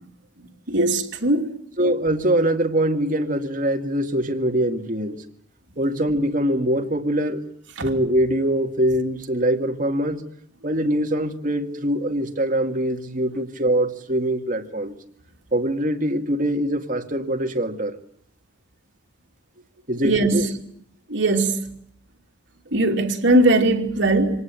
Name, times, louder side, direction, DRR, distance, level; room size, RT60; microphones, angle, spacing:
voice 1, 0.4-1.6 7.8-7.9 20.0-20.5 21.1-21.7 22.7-24.4, right 2 dB, 75° right, 2.9 m, -20 dB
voice 2, 1.8-5.2 5.8-7.4 7.8-10.2 10.6-14.9 15.5-18.0 19.9-20.5, right 1 dB, 40° right, 2.1 m, -23 dB
25.0 x 19.0 x 8.9 m
head